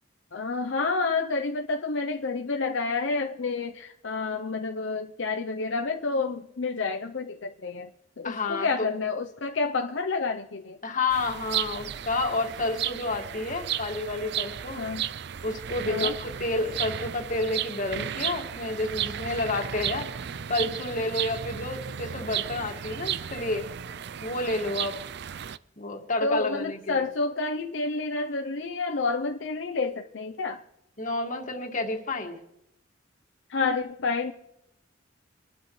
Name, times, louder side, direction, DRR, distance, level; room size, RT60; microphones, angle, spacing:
voice 1, 0.3-7.9 8.2-10.8 14.8-15.0 15.9-16.2 26.2-30.6 33.5-34.3, left 4 dB, 75° left, 4 dB, 0.7 m, -29 dB
voice 2, 8.2-8.9 10.8-14.9 15.4-20.1 20.5-23.7 24.2-25.0 25.8-27.0 31.0-32.4, left 2 dB, 40° left, 3 dB, 2.0 m, -30 dB
sound 1, 11.1-25.6, right 10 dB, 60° right, 0.4 m, -34 dB
25.0 x 12.0 x 3.2 m, 0.82 s
head